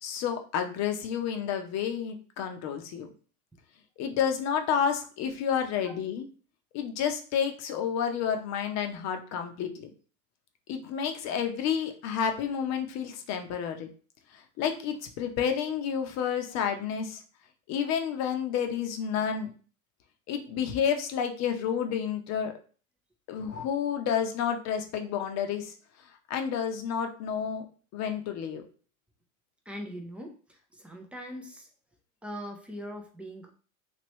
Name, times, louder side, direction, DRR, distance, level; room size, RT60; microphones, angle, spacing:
voice 1, 0.0-3.1 4.0-6.2 6.7-9.9 10.7-13.9 14.6-17.2 17.7-19.5 20.3-22.5 23.3-25.7 26.3-27.7 27.9-28.6, left 8 dB, 40° left, 6 dB, 0.7 m, -30 dB
voice 2, 29.7-31.7 32.2-33.5, equal, 5° right, 2 dB, 0.3 m, -41 dB
3.1 x 2.9 x 3.0 m, 0.40 s
hypercardioid pair, 95°, 43 cm